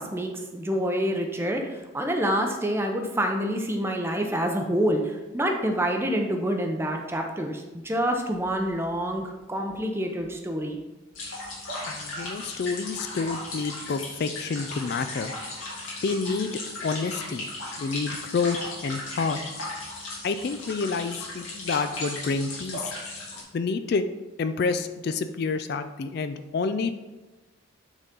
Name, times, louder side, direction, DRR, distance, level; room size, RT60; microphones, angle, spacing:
voice 1, 0.0-10.8, equal, 10° right, 3 dB, 0.6 m, -27 dB
sound 1, 11.1-23.4, left 2 dB, 75° left, 2.3 m, -36 dB
voice 2, 11.8-15.3 15.8-16.5 16.8-17.5 17.8-19.4 20.2-22.9 23.5-24.0 24.4-26.9, left 4 dB, 50° left, 10 dB, 0.3 m, -28 dB
8.9 x 4.0 x 3.7 m, 1.1 s
head